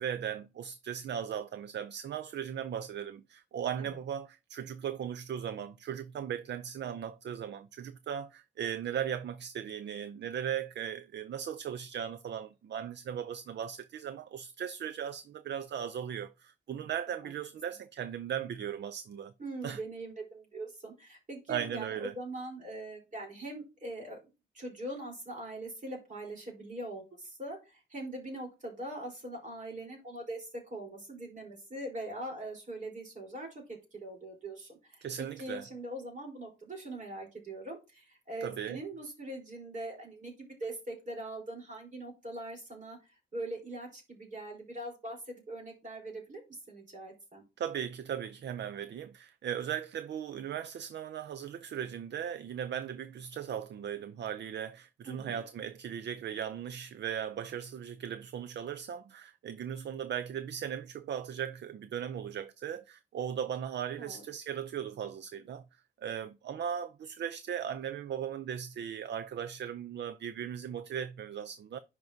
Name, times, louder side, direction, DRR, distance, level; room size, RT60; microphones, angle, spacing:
voice 1, 0.0-19.3 19.6-19.8 21.5-22.1 35.0-35.7 38.4-38.8 47.6-65.6 66.0-71.8, right 9 dB, 60° right, 0.4 m, -38 dB
voice 2, 19.4-24.2 24.5-33.6 33.9-43.0 43.3-46.4 46.7-47.4 55.1-55.4 64.0-64.2, right 1 dB, 40° right, 3.8 m, -42 dB
10.5 x 4.7 x 2.7 m
wide cardioid pair, 140°, 20 cm